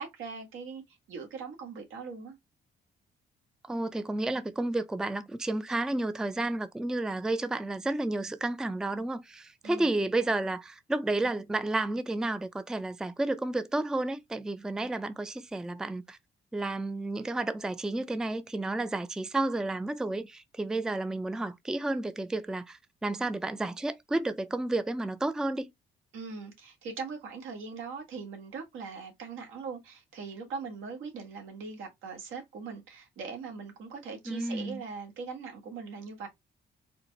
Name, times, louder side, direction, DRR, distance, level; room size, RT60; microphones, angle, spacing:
voice 1, 0.0-2.4 9.6-10.0 26.1-36.3, right 5 dB, 85° right, 1.5 m, -41 dB
voice 2, 3.6-16.2 16.5-25.7 34.3-34.8, right 2 dB, 5° right, 0.4 m, -31 dB
4.3 x 2.1 x 3.9 m
cardioid pair, 90°, 20 cm